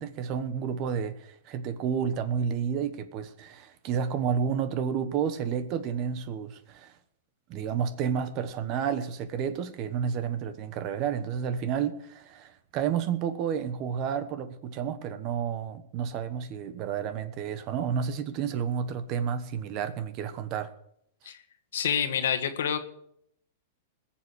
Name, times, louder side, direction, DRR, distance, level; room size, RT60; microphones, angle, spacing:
voice 1, 0.0-6.9 7.5-20.7, right 7 dB, 35° right, 1.2 m, -31 dB
voice 2, 21.7-22.8, left 8 dB, 80° left, 1.6 m, -27 dB
20.5 x 7.4 x 6.4 m
supercardioid pair, 150°, 0 cm